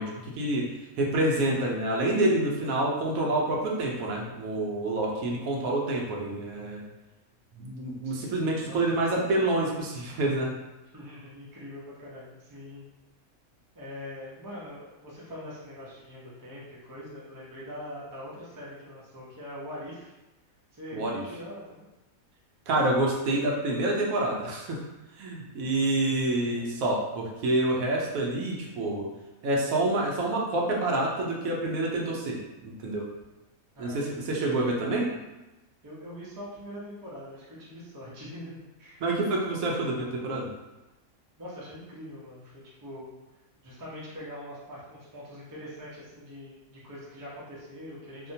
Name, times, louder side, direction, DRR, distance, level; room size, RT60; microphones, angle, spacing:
voice 1, 0.0-6.8 7.6-10.6 20.9-21.2 22.7-24.8 25.2-29.1 29.4-33.1 33.8-35.1 39.0-40.5, right 2 dB, 75° right, -2 dB, 1.0 m, -27 dB
voice 2, 8.0-8.8 9.2-9.3 10.9-12.9 13.7-20.1 20.7-21.9 26.3-26.8 33.7-34.3 35.8-39.0 41.4-43.1 43.6-48.3, left 1 dB, 30° right, -7 dB, 0.3 m, -43 dB
2.7 x 2.1 x 2.6 m, 1.0 s
omnidirectional pair, 1.5 m